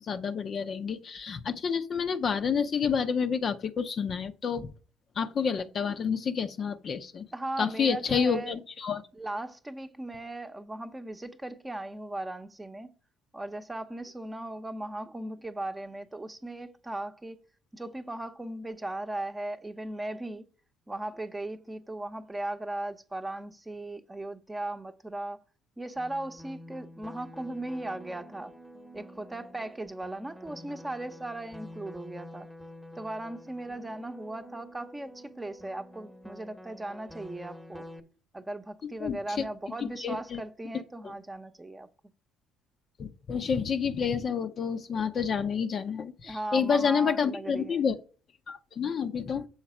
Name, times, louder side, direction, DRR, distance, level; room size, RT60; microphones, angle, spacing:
voice 1, 0.0-4.7 5.2-7.2 7.6-9.0 39.0-39.4 40.0-40.4 43.0-48.0 48.5-49.5, left 6 dB, 50° left, 0.7 m, -29 dB
voice 2, 7.3-8.5 9.1-12.9 13.3-17.4 17.7-20.5 20.9-25.4 25.8-28.5 28.9-32.5 33.0-37.9 38.3-41.9 46.2-47.8, right 1 dB, 15° right, 0.9 m, -37 dB
sound 1, 25.9-38.0, equal, ahead, 1.1 m, -48 dB
7.2 x 4.0 x 5.9 m
hypercardioid pair, 60°, 0 cm